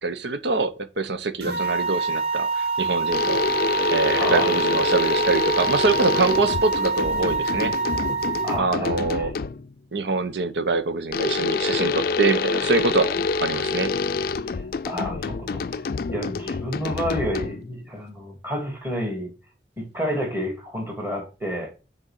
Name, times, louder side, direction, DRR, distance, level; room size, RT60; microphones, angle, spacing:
voice 1, 0.0-3.4 3.9-7.7 8.6-9.3 9.9-13.1 13.4-13.9, right 3 dB, 80° right, 1.0 m, -24 dB
sound 1, 1.4-8.6, right 4 dB, 65° right, 1.8 m, -26 dB
sound 2, 3.1-9.7 11.1-17.8, left 4 dB, 55° left, 0.4 m, -27 dB
voice 2, 4.1-4.6 8.4-9.3 13.2-13.3 14.4-19.3 19.8-21.7, equal, 10° right, 2.8 m, -30 dB
6.4 x 4.5 x 5.9 m
head